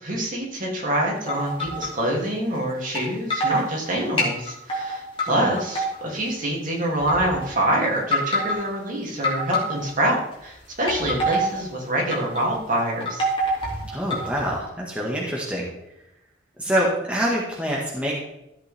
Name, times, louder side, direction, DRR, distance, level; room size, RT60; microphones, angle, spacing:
voice 1, 0.0-13.3, right 1 dB, 45° right, -2 dB, 2.9 m, -25 dB
sound 1, 1.3-2.1 2.9-3.0 3.3-3.7 4.2-5.3 5.6-6.3 7.0-7.5 8.0-8.7 9.2-10.1 10.7-11.6 12.1-12.4 12.7-14.6, equal, 30° left, 3.0 m, -26 dB
voice 2, 13.9-15.6 16.6-18.2, equal, 5° right, -4 dB, 1.7 m, -25 dB
14.0 x 7.9 x 3.6 m, 0.85 s
head